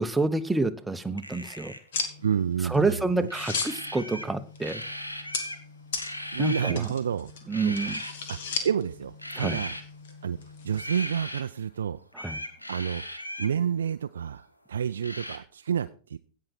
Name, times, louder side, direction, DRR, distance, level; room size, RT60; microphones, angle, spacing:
voice 1, 0.0-1.7 2.7-4.8 6.4-6.9 7.5-8.0 9.4-9.6 12.2-12.4, right 3 dB, 5° right, 10 dB, 0.9 m, -28 dB
sound 1, 1.1-1.9 3.3-4.3 4.6-5.6 6.0-6.8 7.5-8.1 9.2-9.8 10.7-11.4 12.1-13.5 15.0-15.4, equal, 85° left, 1.2 m, -37 dB
sound 2, 1.9-10.8, left 5 dB, 60° left, 1.7 m, -38 dB
voice 2, 2.2-3.3 6.3-7.3 7.6-7.9 8.3-8.4 8.6-9.8 10.2-10.4 10.6-12.0 12.7-13.0 13.4-16.2, right 8 dB, 65° right, 9 dB, 0.4 m, -29 dB
16.5 x 5.7 x 4.3 m, 0.40 s
figure-of-eight pair, 90°, 0 cm